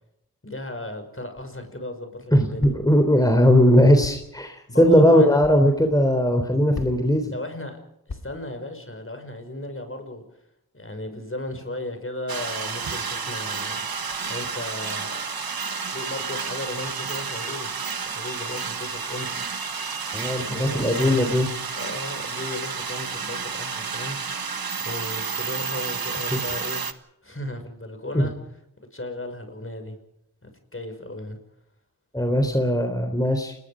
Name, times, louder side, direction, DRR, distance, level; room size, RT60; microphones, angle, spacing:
voice 1, 0.4-2.7 4.7-5.4 7.3-7.8 8.1-10.2 10.7-13.8 14.2-15.2 15.9-17.8 18.1-19.4 20.4-21.4 21.7-26.8 27.2-28.3 28.9-30.0 30.4-31.4, left 1 dB, 35° left, 6 dB, 6.1 m, -35 dB
sound 1, 1.3-1.7 2.6-3.0 4.0-4.3 5.4-5.6 6.7-7.2 8.1-8.5, left 3 dB, 75° left, 2.7 m, -38 dB
voice 2, 2.3-7.3 20.1-21.5 26.3-26.4 28.1-28.3 32.1-33.5, equal, 10° left, 5 dB, 3.5 m, -19 dB
sound 2, 12.3-26.9, right 5 dB, 85° right, 1.5 m, -31 dB
29.5 x 20.5 x 5.1 m, 0.77 s
wide cardioid pair, 60°, 35 cm